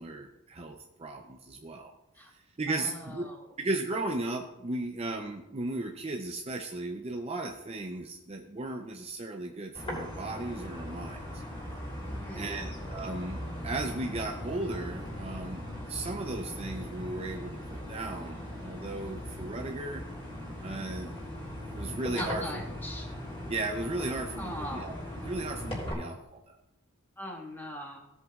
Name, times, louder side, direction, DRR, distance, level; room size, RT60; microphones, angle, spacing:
voice 1, 0.0-1.9 2.3-3.3 3.6-11.4 12.3-20.0 20.6-21.2 21.6-22.6 23.5-24.9 25.2-26.6, right 2 dB, 30° right, 4 dB, 0.6 m, -36 dB
voice 2, 2.7-3.5 12.1-12.6 22.1-23.1 24.4-24.9 27.2-28.0, equal, 10° left, -1 dB, 1.7 m, -40 dB
sound 1, 9.7-25.9, equal, 25° left, 3.3 m, -39 dB
16.5 x 8.0 x 2.4 m, 0.91 s
head